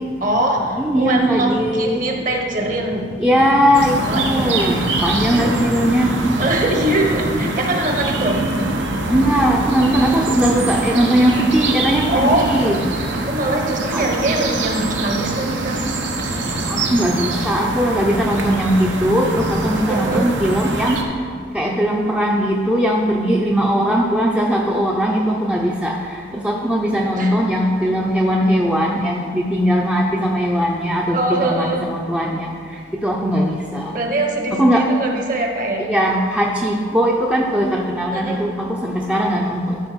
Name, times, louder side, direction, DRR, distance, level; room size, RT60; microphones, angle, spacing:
voice 1, 0.2-3.1 4.0-4.7 5.2-5.5 6.4-8.4 12.1-12.7 13.3-15.8 19.9-20.3 27.1-27.4 31.1-31.9 33.9-35.9 38.1-38.5, right 1 dB, 45° right, 2 dB, 1.2 m, -22 dB
voice 2, 0.8-2.1 3.2-6.5 9.1-12.8 13.9-14.0 16.7-21.0 21.5-32.5 33.0-33.9 34.5-34.8 35.8-39.8, equal, 5° right, -2 dB, 0.5 m, -19 dB
sound 1, 3.7-21.0, right 2 dB, 80° right, 1.1 m, -24 dB
12.5 x 4.5 x 6.2 m, 2.1 s
head